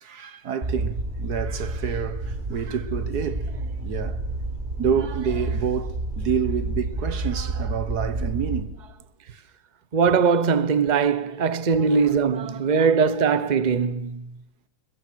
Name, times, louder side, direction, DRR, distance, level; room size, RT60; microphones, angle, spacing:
voice 1, 0.0-4.2 4.8-9.0 11.3-11.4 11.8-12.9, right 7 dB, 50° right, 1.6 m, -29 dB
sound 1, 0.6-8.6, right 2 dB, 20° right, 4.5 m, -30 dB
voice 2, 9.9-14.2, right 5 dB, 75° right, 0.4 m, -21 dB
29.0 x 21.5 x 6.3 m
omnidirectional pair, 2.4 m